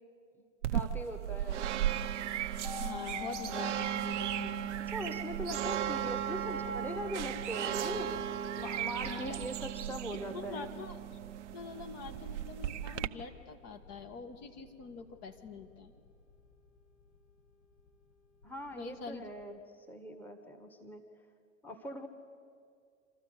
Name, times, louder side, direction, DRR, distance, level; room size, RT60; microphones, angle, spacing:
sound 1, 0.6-13.1, right 10 dB, 70° right, 0.8 m, -36 dB
voice 1, 0.7-1.7 4.9-8.2 8.5-10.7 18.4-21.0 21.6-22.1, equal, 5° left, 5 dB, 1.4 m, -41 dB
sound 2, 1.8-19.5, left 3 dB, 75° left, 3.6 m, -50 dB
voice 2, 2.8-4.7 9.0-9.4 10.3-11.2 11.5-15.9 18.7-19.2, left 5 dB, 40° left, 6 dB, 1.8 m, -45 dB
26.5 x 13.5 x 8.2 m, 2.3 s
hypercardioid pair, 100°, 37 cm